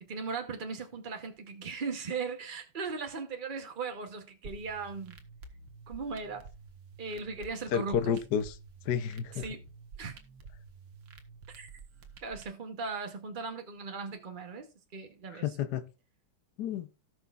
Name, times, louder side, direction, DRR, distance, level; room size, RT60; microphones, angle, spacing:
voice 1, 0.0-5.2 5.9-6.5 7.0-8.1 9.3-9.6 10.0-10.1 11.5-11.7 12.2-14.7 14.9-15.5, right 4 dB, 45° right, 0.6 m, -38 dB
sound 1, 4.4-12.4, right 4 dB, 70° right, 1.9 m, -50 dB
voice 2, 7.7-8.6 8.9-9.4 15.3-15.8 16.6-16.9, left 8 dB, 65° left, 1.2 m, -30 dB
17.5 x 5.9 x 2.4 m
omnidirectional pair, 2.2 m